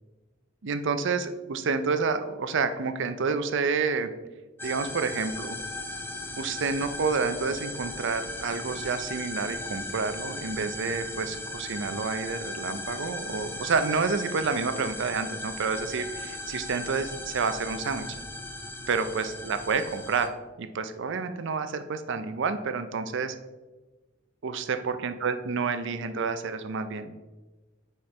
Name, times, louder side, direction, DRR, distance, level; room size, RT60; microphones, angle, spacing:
voice 1, 0.6-4.1 4.6-5.6 6.4-18.1 18.9-20.3 20.6-23.3 24.4-27.1, right 5 dB, 65° right, 10 dB, 0.5 m, -29 dB
sound 1, 4.6-20.3, left 2 dB, 10° left, 0.5 m, -37 dB
8.6 x 4.4 x 3.3 m, 1.2 s
head